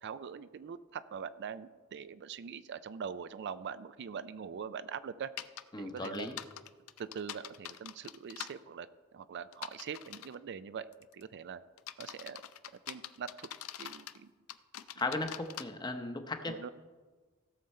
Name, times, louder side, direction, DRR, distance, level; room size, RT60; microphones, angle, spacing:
voice 1, 0.0-5.3 5.8-6.3 7.0-8.9 9.1-11.6 12.0-12.4 12.9-13.5 13.8-14.3 16.4-16.7, right 7 dB, 55° right, 14 dB, 0.4 m, -43 dB
sound 1, 5.4-5.6 6.0-8.5 9.5-10.3 10.9-11.2 11.8-14.2 14.5-15.6, left 11 dB, 85° left, 0.5 m, -44 dB
voice 2, 5.7-6.3 15.0-16.5, left 2 dB, 20° left, 6 dB, 0.9 m, -36 dB
17.0 x 6.7 x 4.3 m, 1.4 s
head